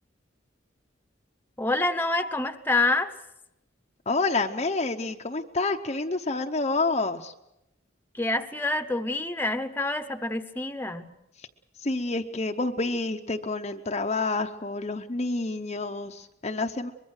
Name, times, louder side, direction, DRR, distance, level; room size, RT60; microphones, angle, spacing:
voice 1, 1.6-3.1 8.1-11.1, left 2 dB, 10° left, 7 dB, 0.9 m, -27 dB
voice 2, 4.1-7.3 11.8-16.9, left 3 dB, 35° left, 4 dB, 0.8 m, -28 dB
24.0 x 22.0 x 6.5 m, 0.87 s
head